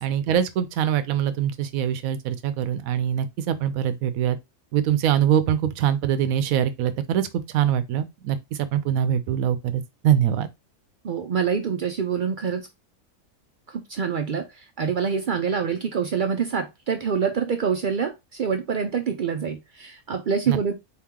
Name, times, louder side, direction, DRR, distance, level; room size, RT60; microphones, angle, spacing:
voice 1, 0.0-4.4 4.7-7.3 7.5-10.5 20.5-20.6, right 10 dB, 90° right, 1.0 m, -23 dB
voice 2, 11.0-12.7 13.7-20.7, right 6 dB, 65° right, 0.5 m, -26 dB
4.2 x 3.0 x 3.6 m
omnidirectional pair, 1.4 m